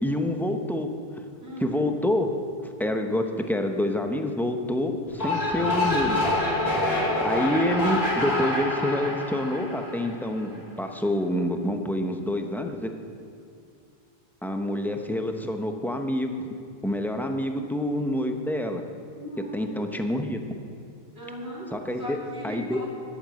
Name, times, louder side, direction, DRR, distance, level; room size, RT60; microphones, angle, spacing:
voice 1, 0.0-0.9 1.6-2.3 2.8-6.2 7.2-12.9 14.4-16.5 16.8-18.8 19.5-20.4 21.7-22.2 22.4-22.8, left 1 dB, ahead, 4 dB, 0.7 m, -27 dB
voice 2, 1.4-1.8 19.2-20.0 21.1-22.9, equal, 80° right, -8 dB, 3.4 m, -38 dB
sound 1, 5.1-10.4, left 1 dB, 75° left, 3.5 m, -26 dB
11.0 x 9.0 x 7.6 m, 2.5 s
omnidirectional pair, 1.0 m